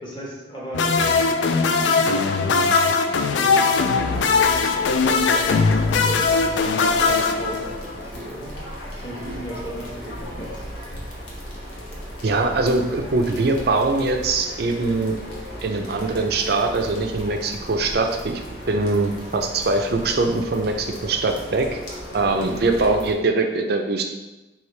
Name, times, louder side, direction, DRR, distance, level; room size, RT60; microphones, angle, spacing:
voice 1, 0.0-6.4 7.0-8.6 8.9-10.6, right 1 dB, 25° left, -4 dB, 1.0 m, -36 dB
sound 1, 0.7-8.0, left 4 dB, 70° left, 0.3 m, -20 dB
sound 2, 4.1-23.1, equal, 90° left, 1.1 m, -36 dB
voice 2, 12.2-15.2 15.6-18.4 18.7-21.8 22.1-24.1, right 3 dB, 55° right, 4 dB, 0.5 m, -22 dB
4.7 x 3.1 x 3.2 m, 1.1 s
head